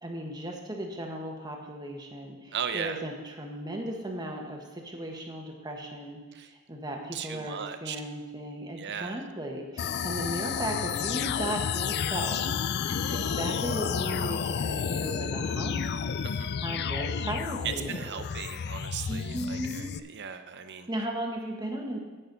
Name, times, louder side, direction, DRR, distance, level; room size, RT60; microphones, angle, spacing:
voice 1, 0.0-6.2 6.7-12.4 13.1-15.8 16.6-18.1 19.1-20.0 20.9-22.0, right 1 dB, 20° right, 1 dB, 1.3 m, -36 dB
voice 2, 2.5-3.0 6.3-6.5 7.1-8.0 8.8-9.2 12.9-13.2 16.2-16.6 17.6-20.9, right 7 dB, 50° right, 9 dB, 0.7 m, -37 dB
sound 1, 9.8-20.0, left 7 dB, 50° left, 0.4 m, -31 dB
10.0 x 8.9 x 4.0 m, 1.3 s
head